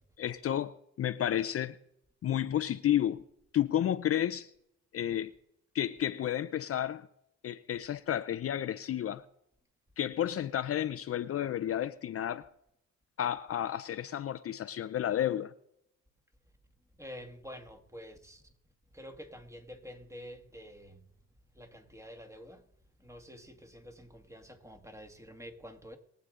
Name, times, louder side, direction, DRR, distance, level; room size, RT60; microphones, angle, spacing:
voice 1, 0.2-1.8 2.2-3.2 3.5-4.5 4.9-5.3 5.7-7.1 7.4-9.2 10.0-12.5 13.2-15.5, left 11 dB, 50° left, 0.6 m, -31 dB
voice 2, 17.0-18.4 18.9-21.1 21.5-22.6 23.0-26.0, equal, 10° right, 1.8 m, -48 dB
22.0 x 8.1 x 3.8 m
cardioid pair, 90°, 30 cm